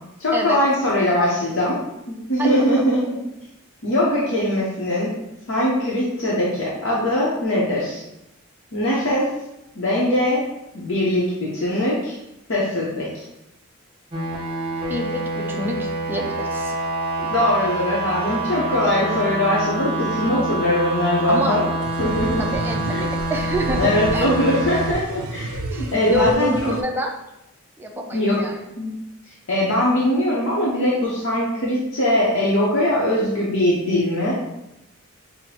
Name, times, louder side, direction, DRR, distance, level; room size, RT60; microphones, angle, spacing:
voice 1, 0.2-1.8 2.1-3.2 3.8-5.1 5.5-8.0 8.7-9.3 9.8-10.4 10.7-12.1 12.5-13.2 17.2-21.6 22.0-22.5 22.9-23.1 23.7-26.7 28.1-28.4 28.8-28.9 29.5-34.3, left 1 dB, 60° left, -6 dB, 0.8 m, -21 dB
voice 2, 2.4-2.9 14.9-16.8 21.3-21.6 22.4-24.5 25.7-27.1 27.8-28.7, equal, 10° right, 1 dB, 0.4 m, -27 dB
sound 1, 14.1-24.9, right 1 dB, 25° right, 0.8 m, -26 dB
sound 2, 21.8-26.8, right 2 dB, 80° right, 0.4 m, -32 dB
5.8 x 2.1 x 2.8 m, 0.87 s
head